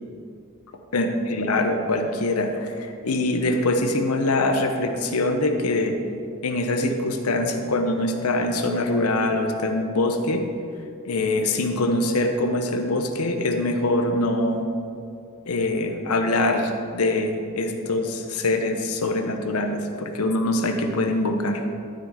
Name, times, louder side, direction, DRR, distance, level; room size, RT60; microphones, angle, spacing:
voice 1, 0.9-6.0 6.4-10.4 11.0-14.7 15.4-21.6, left 2 dB, 85° left, 5 dB, 0.9 m, -23 dB
12.0 x 6.1 x 4.9 m, 2.4 s
head